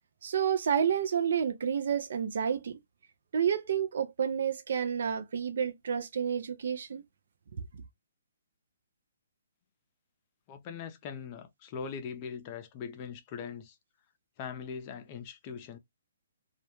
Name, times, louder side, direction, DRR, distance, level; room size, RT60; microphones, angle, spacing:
voice 1, 0.2-2.8 3.3-7.0, right 8 dB, 60° right, 0.5 m, -30 dB
voice 2, 10.5-13.8 14.4-15.8, left 6 dB, 30° left, 0.5 m, -41 dB
2.3 x 2.1 x 2.9 m
hypercardioid pair, 150°, 0 cm